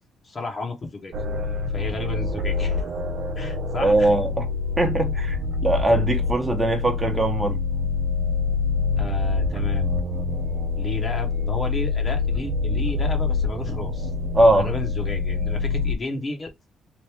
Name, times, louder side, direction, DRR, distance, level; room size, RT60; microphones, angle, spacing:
voice 1, 0.2-1.1 1.7-2.8 3.4-4.2 9.0-9.9 10.8-14.1 14.5-16.5, left 3 dB, 35° left, 1.0 m, -32 dB
sound 1, 1.1-16.0, left 4 dB, 70° right, 0.7 m, -26 dB
voice 2, 3.8-4.5 4.8-5.4 5.6-7.6 14.3-14.7, right 1 dB, 20° right, 0.9 m, -20 dB
3.0 x 2.6 x 3.4 m
cardioid pair, 90°, 0 cm